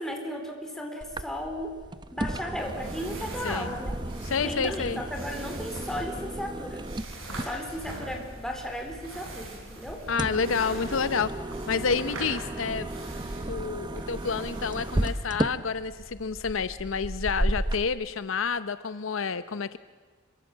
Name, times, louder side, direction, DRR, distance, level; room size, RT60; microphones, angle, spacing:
voice 1, 0.0-1.7 2.1-4.0 4.4-6.9 7.4-10.0 13.5-13.7, equal, 5° left, 2 dB, 4.1 m, -35 dB
sound 1, 1.0-17.8, right 1 dB, 20° right, 0.8 m, -34 dB
sound 2, 2.6-15.1, right 2 dB, 80° right, 7.3 m, -43 dB
voice 2, 3.4-3.8 4.2-5.0 10.1-11.3 11.7-12.9 13.5-19.8, left 5 dB, 70° left, 13 dB, 0.7 m, -29 dB
26.5 x 23.0 x 7.4 m, 1.5 s
head